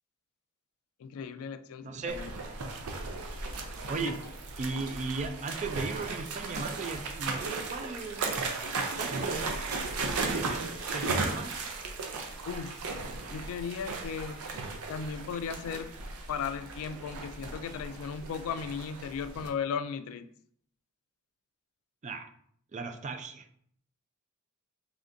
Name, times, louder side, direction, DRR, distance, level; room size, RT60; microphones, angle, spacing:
voice 1, 1.0-2.3 4.0-4.2 12.5-12.9 13.3-14.4 14.9-16.0 16.3-20.3, left 6 dB, 70° left, 12 dB, 0.3 m, -36 dB
voice 2, 1.8-2.2 3.9-4.2 4.6-8.4 9.0-9.6 10.0-11.6 22.0-22.3 22.7-23.5, right 4 dB, 35° right, 7 dB, 0.4 m, -37 dB
sound 1, 2.1-19.5, right 3 dB, 80° right, 0.6 m, -36 dB
3.6 x 3.4 x 2.6 m, 0.63 s
head